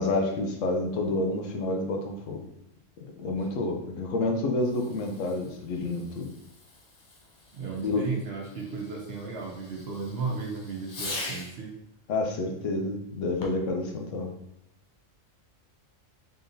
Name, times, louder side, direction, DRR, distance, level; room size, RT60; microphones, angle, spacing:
voice 1, 0.0-2.4 3.0-6.3 7.8-8.0 12.1-14.3, left 2 dB, 75° left, 2 dB, 1.0 m, -29 dB
Fireworks, 4.6-11.7 13.3-13.8, left 2 dB, 45° left, 0.7 m, -43 dB
voice 2, 7.5-11.7, right 4 dB, 55° right, 0 dB, 0.9 m, -35 dB
3.8 x 3.3 x 2.6 m, 0.77 s
omnidirectional pair, 1.4 m